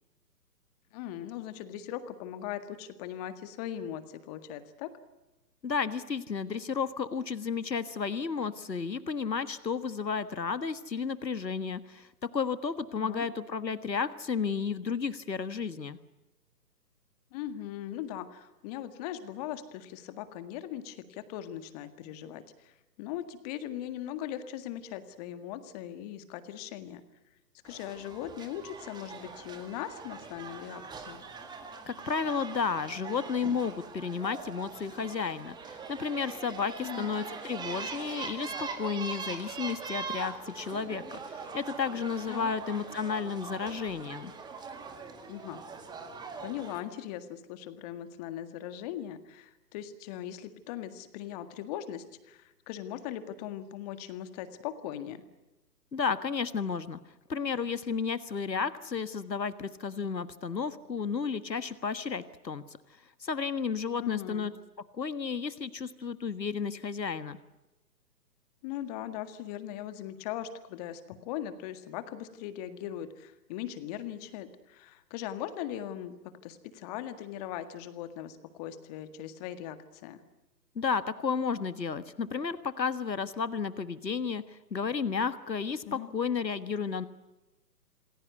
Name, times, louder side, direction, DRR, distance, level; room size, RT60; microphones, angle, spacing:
voice 1, 0.9-4.9 12.9-13.3 17.3-27.0 27.6-31.2 36.8-37.1 42.3-42.5 45.3-45.6 46.4-55.2 64.0-64.5 68.6-76.2 76.4-80.2 85.9-86.1, left 11 dB, 25° left, 10 dB, 1.8 m, -39 dB
voice 2, 5.6-12.1 12.3-16.0 31.9-44.3 55.9-57.0 57.3-62.6 63.2-64.5 65.0-67.4 80.7-87.1, left 5 dB, 85° left, 13 dB, 1.6 m, -32 dB
sound 1, 27.7-46.8, right 4 dB, 10° right, 2.0 m, -42 dB
28.0 x 20.5 x 8.2 m, 1.0 s
figure-of-eight pair, 135°, 50 cm